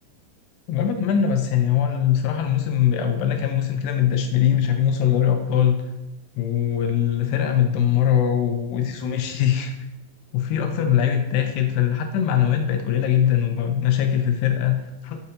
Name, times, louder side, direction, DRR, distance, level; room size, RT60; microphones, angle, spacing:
voice 1, 0.7-5.8 6.4-9.7 10.3-15.2, left 9 dB, 85° left, 6 dB, 2.5 m, -21 dB
6.4 x 5.7 x 2.8 m, 0.97 s
omnidirectional pair, 5.0 m